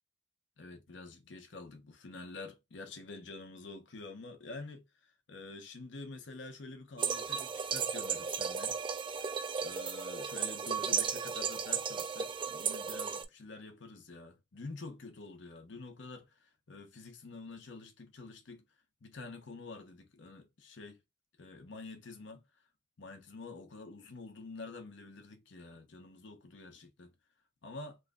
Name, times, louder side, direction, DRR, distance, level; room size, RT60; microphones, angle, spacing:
voice 1, 0.6-8.8 9.2-18.6 19.0-21.0 21.4-22.4 23.0-27.1 27.6-28.0, left 3 dB, 80° left, 0.8 m, -48 dB
sound 1, 7.0-13.2, right 6 dB, 30° right, 0.3 m, -35 dB
3.1 x 2.2 x 3.4 m
head